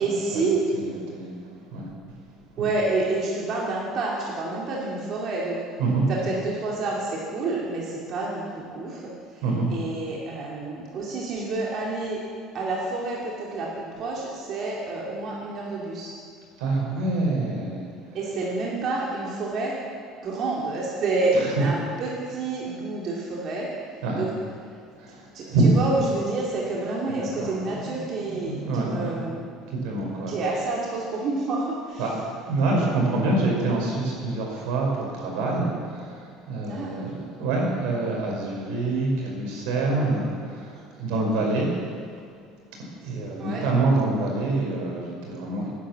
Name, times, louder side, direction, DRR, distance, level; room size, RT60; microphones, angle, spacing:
voice 1, 0.0-0.6 2.6-5.6 6.1-12.2 12.5-16.1 18.1-19.8 20.2-23.7 24.2-24.3 25.3-29.5 30.3-32.1 36.7-37.1 43.4-43.6, right 3 dB, 40° right, -4 dB, 2.4 m, -28 dB
voice 2, 0.7-1.4 1.7-1.9 2.6-2.7 5.8-6.1 9.4-9.7 16.6-17.9 21.4-21.7 24.0-24.3 25.0-25.7 27.2-27.6 27.9-28.0 28.4-29.3 29.7-30.3 32.0-32.1 32.5-41.7 43.0-45.7, right 2 dB, 75° right, -1 dB, 5.3 m, -26 dB
17.5 x 10.0 x 7.5 m, 2.2 s
cardioid pair, 160°, 0 cm